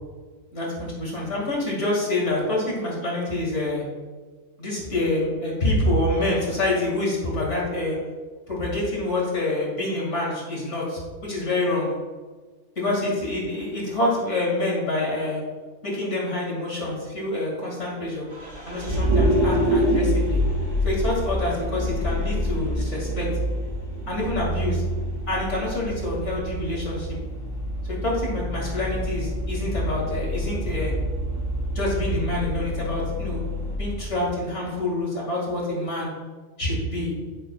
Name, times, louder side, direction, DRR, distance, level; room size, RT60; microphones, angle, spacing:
voice 1, 0.5-3.8 4.6-7.9 8.5-11.9 12.8-15.4 15.8-18.2 18.7-20.4 20.8-23.3 24.1-24.8 25.3-27.2 27.9-30.9 31.7-33.4 33.8-36.1 36.6-37.1, left 1 dB, 55° left, -4 dB, 2.6 m, -26 dB
Vehicle, 18.3-33.8, equal, 65° right, 3.4 m, -26 dB
14.0 x 6.9 x 2.4 m, 1.4 s
omnidirectional pair, 1.4 m